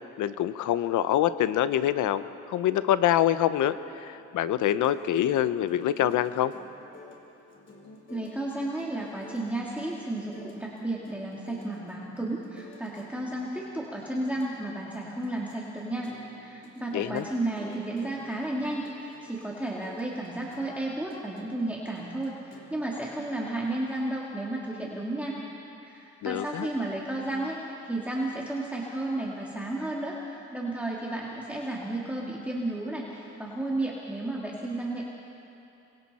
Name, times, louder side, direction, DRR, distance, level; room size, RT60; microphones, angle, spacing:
voice 1, 0.2-6.5 16.9-17.2 26.2-26.7, left 11 dB, 80° left, 14 dB, 0.8 m, -25 dB
sound 1, 4.1-24.0, left 2 dB, 40° left, 3.5 m, -52 dB
voice 2, 8.1-25.4 25.8-35.0, right 1 dB, 5° right, -4 dB, 2.3 m, -33 dB
27.5 x 23.0 x 4.2 m, 2.9 s
cardioid pair, 90°, 30 cm